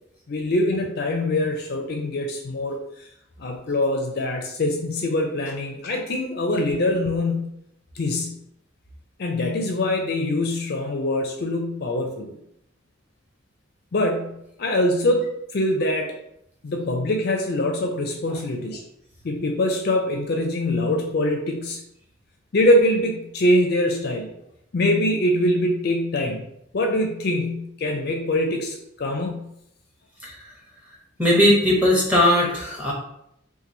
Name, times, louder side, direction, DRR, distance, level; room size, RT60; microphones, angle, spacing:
voice 1, 0.3-2.8 3.4-7.4 8.0-8.4 9.2-12.3 13.9-14.3 14.6-15.3 15.5-16.1 16.6-18.8 19.2-21.8 22.5-24.3 24.7-26.5 26.7-29.4, left 1 dB, 50° left, 3 dB, 0.4 m, -23 dB
voice 2, 31.2-32.9, left 1 dB, 5° right, -4 dB, 0.8 m, -18 dB
2.9 x 2.4 x 3.8 m, 0.76 s
head